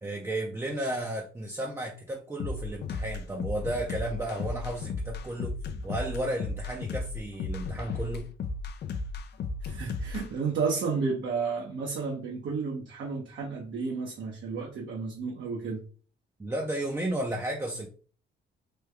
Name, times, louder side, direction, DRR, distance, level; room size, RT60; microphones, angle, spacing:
voice 1, 0.0-5.6 5.8-8.3 16.4-17.9, right 1 dB, 15° right, 0.5 m, -33 dB
sound 1, 2.4-10.3, left 3 dB, 55° left, 0.4 m, -34 dB
voice 2, 9.6-15.8, right 5 dB, 70° right, 0.9 m, -32 dB
3.3 x 2.3 x 3.3 m
cardioid pair, 90°, 20 cm